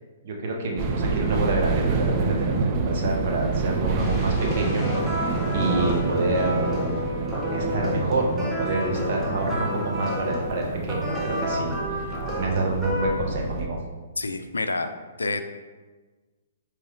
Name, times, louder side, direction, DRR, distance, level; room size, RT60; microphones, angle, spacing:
voice 1, 0.2-4.9 5.2-6.9 7.5-13.8, right 2 dB, 55° right, 0 dB, 1.0 m, -27 dB
sound 1, 0.8-13.7, right 4 dB, 35° right, 0.4 m, -28 dB
sound 2, 4.0-11.8, left 2 dB, 20° left, 1.0 m, -40 dB
sound 3, 4.4-13.1, left 1 dB, 10° right, 1.0 m, -30 dB
voice 2, 14.2-14.9 15.2-15.4, left 3 dB, 90° left, 9 dB, 0.3 m, -27 dB
4.8 x 3.1 x 3.1 m, 1.3 s
hypercardioid pair, 125°, 0 cm